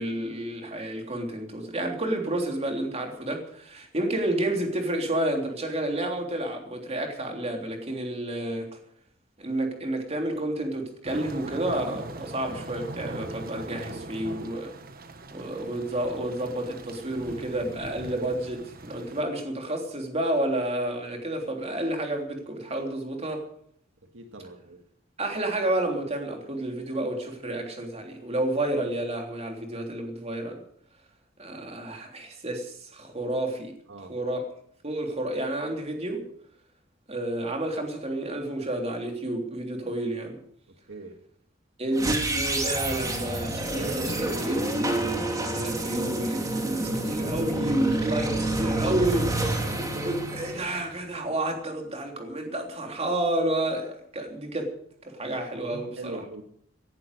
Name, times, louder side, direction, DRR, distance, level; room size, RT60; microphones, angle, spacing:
voice 1, 0.0-8.7 9.4-14.7 15.3-23.5 25.2-30.6 31.4-33.7 34.0-34.4 34.8-36.2 37.1-40.4 41.8-54.7 55.0-56.2, right 1 dB, 35° right, 3 dB, 3.4 m, -30 dB
sound 1, 11.0-19.2, right 2 dB, 50° right, 1.3 m, -41 dB
voice 2, 24.1-24.8 33.9-34.2 40.9-41.2 55.7-56.4, right 2 dB, 75° right, 5 dB, 1.9 m, -41 dB
sound 2, 41.9-51.2, right 1 dB, 20° right, 2.7 m, -28 dB
18.5 x 11.0 x 6.7 m, 0.67 s
head